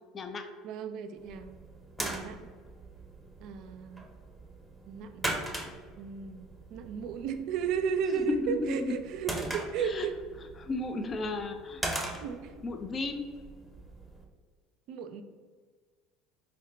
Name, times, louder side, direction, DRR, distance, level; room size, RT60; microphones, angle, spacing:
voice 1, 0.6-1.6 2.0-2.5 3.4-4.1 4.9-5.3 6.0-10.1 12.2-12.5 14.9-15.2, right 7 dB, 65° right, 8 dB, 0.3 m, -34 dB
sound 1, 1.2-14.2, right 1 dB, ahead, 0.7 m, -41 dB
voice 2, 8.0-8.9 9.8-10.1 10.4-11.8 12.6-13.3, left 2 dB, 35° left, 6 dB, 0.3 m, -34 dB
4.2 x 2.1 x 3.8 m, 1.5 s
supercardioid pair, 90°, 0 cm